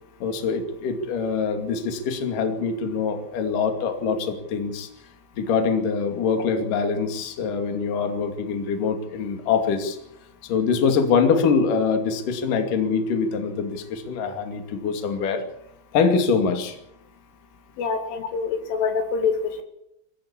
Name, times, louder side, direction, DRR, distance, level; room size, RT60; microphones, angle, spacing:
voice 1, 0.2-4.9 5.4-10.0 10.5-15.5 15.9-16.8, left 5 dB, 50° left, 6 dB, 3.6 m, -24 dB
voice 2, 17.8-19.4, left 5 dB, 90° left, 6 dB, 4.9 m, -25 dB
23.5 x 15.0 x 8.5 m, 0.79 s
omnidirectional pair, 5.5 m